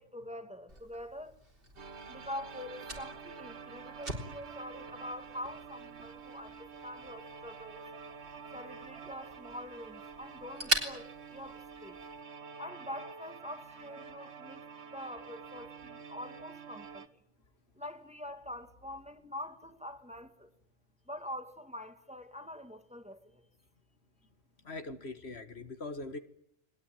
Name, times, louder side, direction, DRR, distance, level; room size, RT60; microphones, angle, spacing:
voice 1, 0.0-1.3 2.1-7.9 8.5-12.0 12.6-14.6 14.9-17.2 17.7-20.5 21.1-23.4, left 1 dB, 5° right, 2.2 m, -45 dB
Fire, 0.7-12.2, right 2 dB, 50° right, 4.1 m, -42 dB
sound 1, 1.8-17.1, right 5 dB, 65° right, 1.6 m, -48 dB
voice 2, 24.6-26.2, left 2 dB, 65° left, 2.0 m, -41 dB
30.0 x 21.0 x 9.2 m
omnidirectional pair, 1.2 m